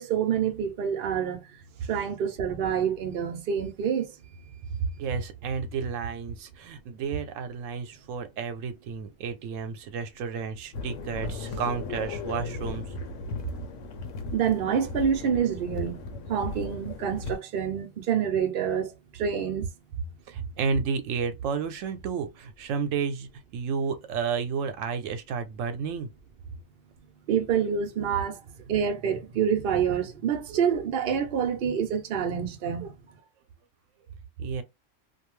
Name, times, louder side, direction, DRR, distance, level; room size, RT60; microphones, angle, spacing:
voice 1, 0.0-1.4 1.9-4.1 14.3-16.0 16.3-19.7 27.3-28.4 28.7-32.9, right 8 dB, 55° right, 0.7 m, -27 dB
voice 2, 5.0-13.0 20.3-26.1 34.4-34.6, right 6 dB, 85° right, 1.0 m, -31 dB
sound 1, 10.7-17.4, left 3 dB, 85° left, 1.0 m, -36 dB
2.6 x 2.2 x 3.0 m
omnidirectional pair, 1.3 m